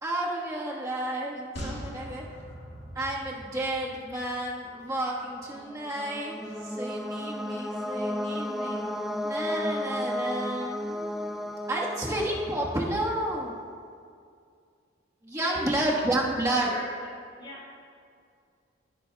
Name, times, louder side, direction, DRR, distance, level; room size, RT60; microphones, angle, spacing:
voice 1, 0.0-2.2 2.9-8.8 9.2-11.4 11.7-13.5 15.2-16.7, right 1 dB, 15° right, -4 dB, 1.4 m, -31 dB
sound 1, 1.6-5.0 5.3-5.4, equal, 60° left, 2.2 m, -42 dB
sound 2, 5.5-13.3, left 1 dB, ahead, 0.3 m, -33 dB
voice 2, 15.3-15.7 16.3-17.8, equal, 25° left, -5 dB, 2.8 m, -43 dB
16.5 x 9.4 x 2.3 m, 2.3 s
head